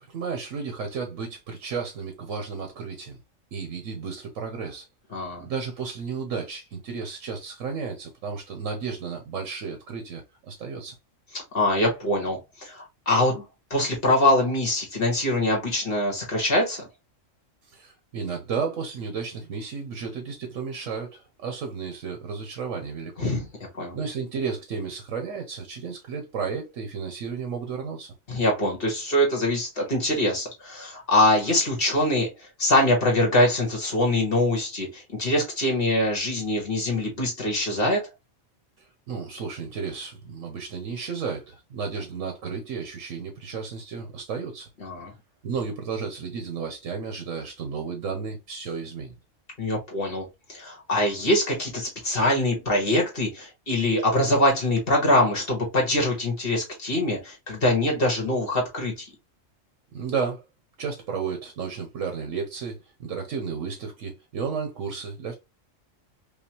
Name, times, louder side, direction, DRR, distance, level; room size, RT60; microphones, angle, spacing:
voice 1, 0.1-3.2 3.5-4.9 5.4-10.9 17.7-23.3 23.9-28.1 38.8-44.7 45.4-49.1 59.9-60.4 60.8-65.3, right 5 dB, 85° right, 1.3 m, -33 dB
voice 2, 5.1-5.4 11.3-13.4 13.7-16.9 23.2-23.4 23.8-24.0 28.3-38.1 44.8-45.1 49.6-59.1, left 1 dB, 45° left, 1.8 m, -23 dB
5.2 x 2.3 x 2.9 m
omnidirectional pair, 1.3 m